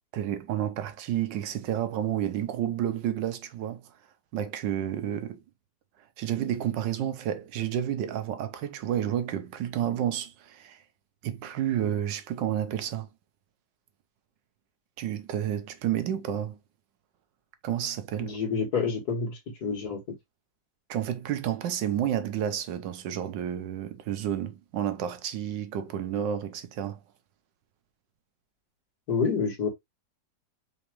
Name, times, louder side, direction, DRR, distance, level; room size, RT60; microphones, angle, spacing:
voice 1, 0.1-3.8 4.3-5.4 6.2-10.8 11.2-13.1 15.0-16.6 17.6-18.3 20.9-27.0, right 10 dB, 85° right, 1.5 m, -30 dB
voice 2, 18.2-20.0 29.1-29.7, left 5 dB, 60° left, 2.5 m, -28 dB
4.9 x 3.1 x 3.0 m
omnidirectional pair, 1.9 m